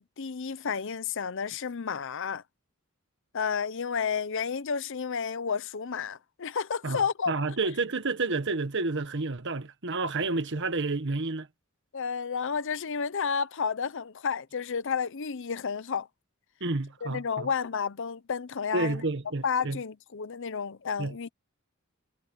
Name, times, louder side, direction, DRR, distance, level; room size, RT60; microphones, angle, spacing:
voice 1, 0.0-2.4 3.3-7.3 11.9-16.1 17.0-19.0 19.4-21.3, left 6 dB, 65° left, 0.7 m, -31 dB
voice 2, 6.8-11.5 16.6-17.5 18.7-19.8 21.0-21.1, right 3 dB, 60° right, 1.4 m, -30 dB
head